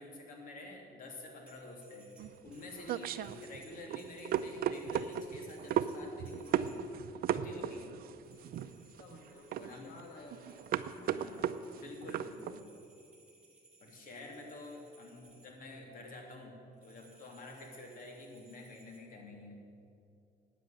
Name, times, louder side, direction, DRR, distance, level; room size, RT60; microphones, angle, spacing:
voice 1, 0.0-2.1 2.4-6.9 7.3-8.0 9.6-9.9 11.0-11.5 11.7-12.7 13.8-19.6, left 2 dB, 55° left, 1 dB, 3.1 m, -49 dB
sound 1, 1.4-7.1 8.2-15.6 16.7-19.0, right 3 dB, 5° right, 3.6 m, -63 dB
sound 2, 2.2-12.6, right 9 dB, 60° right, 0.6 m, -36 dB
voice 2, 2.6-2.9 7.6-7.7 8.6-8.7 9.0-10.7 14.2-14.3, left 3 dB, 75° left, 2 dB, 2.7 m, -54 dB
13.0 x 9.2 x 8.9 m, 2.5 s
cardioid pair, 110°, 17 cm